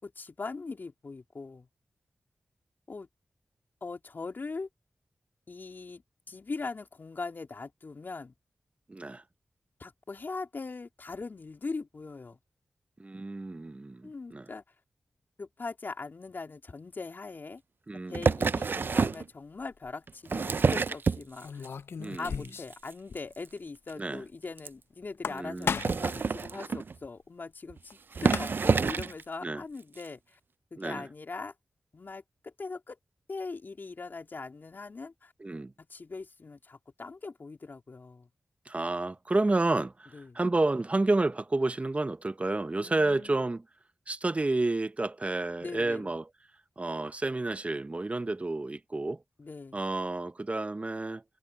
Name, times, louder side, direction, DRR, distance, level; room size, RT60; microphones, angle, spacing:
voice 1, 0.0-1.7 2.9-3.1 3.8-4.7 5.5-6.0 6.3-8.3 9.8-12.4 14.0-14.6 15.4-17.6 17.9-21.7 22.2-30.4 30.7-31.5 31.9-33.0 33.3-35.3 35.8-38.3 40.1-40.4 42.8-43.4 45.6-46.1 49.4-49.8, left 4 dB, 55° left, 3.2 m, -41 dB
voice 2, 8.9-9.2 13.0-14.5 17.9-18.3 22.0-22.4 24.0-24.2 25.3-25.8 28.8-28.9 29.4-29.6 30.8-31.1 35.4-35.7 38.6-43.6 44.1-46.3 46.8-49.2 49.7-51.2, right 2 dB, 35° right, 1.0 m, -30 dB
sound 1, 18.1-19.3 20.1-21.7 22.0-22.5 22.7-22.9 23.2-23.3 23.5-23.6 23.9-24.0 24.6-24.7 25.6-27.0 27.7-27.8 28.1-29.2 30.0-30.1, right 5 dB, 60° right, 0.5 m, -27 dB
sound 2, 19.6-19.9 21.4-22.8 23.1-23.2 23.5-23.6 25.0-26.1 27.9-28.0 28.2-28.8, left 6 dB, 75° left, 0.6 m, -35 dB
cardioid pair, 45°, 4 cm